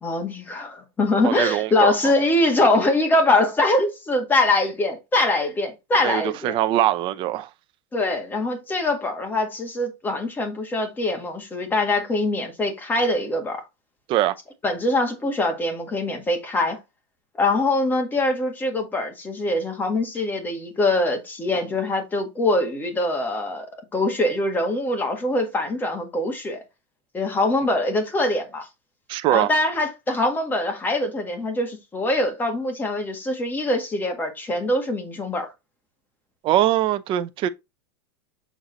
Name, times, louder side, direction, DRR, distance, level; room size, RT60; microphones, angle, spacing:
voice 1, 0.0-6.6 7.9-13.6 14.6-16.8 17.4-23.7 23.9-26.6 27.1-28.7 29.3-35.5, left 2 dB, 15° left, 1.8 m, -23 dB
voice 2, 1.2-2.0 6.0-7.5 14.1-14.3 29.1-29.5 36.4-37.5, right 13 dB, 35° right, 0.7 m, -22 dB
7.4 x 3.9 x 4.0 m
supercardioid pair, 150°, 14 cm